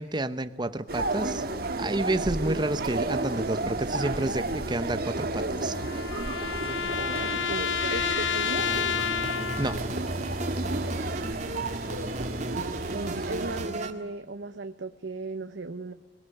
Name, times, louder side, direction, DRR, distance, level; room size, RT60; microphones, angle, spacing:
voice 1, 0.0-1.4 1.8-5.8 9.6-9.9, right 2 dB, 25° right, 11 dB, 0.8 m, -30 dB
sound 1, 0.9-13.7, right 2 dB, 55° right, 1.6 m, -32 dB
sound 2, 5.2-9.9, left 8 dB, 85° left, 0.8 m, -30 dB
voice 2, 7.4-8.7 12.9-15.9, right 2 dB, 80° right, 8 dB, 0.9 m, -36 dB
sound 3, 8.6-13.9, right 2 dB, 40° right, 1.8 m, -35 dB
22.5 x 19.5 x 9.8 m, 1.1 s
head